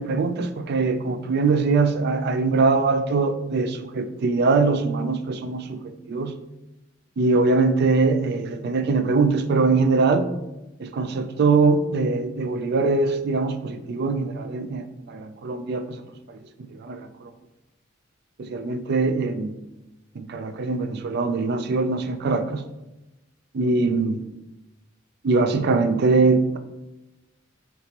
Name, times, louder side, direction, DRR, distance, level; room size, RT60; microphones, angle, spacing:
voice 1, 0.0-6.3 7.2-10.3 10.8-16.0 16.3-16.4 16.8-17.1 18.4-19.5 20.2-22.7 23.5-24.2 25.2-26.6, right 3 dB, 55° right, 9 dB, 0.4 m, -22 dB
5.0 x 3.0 x 2.9 m, 1.0 s
head